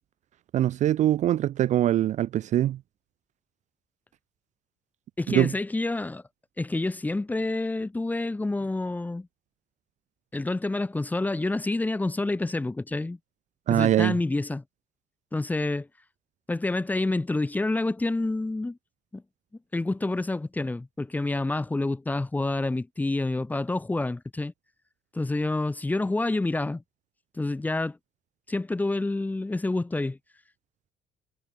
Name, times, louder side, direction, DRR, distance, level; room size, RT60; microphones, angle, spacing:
voice 1, 0.5-2.8 5.3-5.5 13.7-14.2, right 12 dB, 45° right, 0.5 m, -23 dB
voice 2, 5.2-6.2 6.6-9.3 10.3-13.2 13.7-14.6 15.3-15.9 16.5-18.8 19.1-19.2 19.7-24.5 25.1-26.8 27.4-28.0 28.5-30.2, left 2 dB, 10° left, 0.9 m, -28 dB
cardioid pair, 140°, 16 cm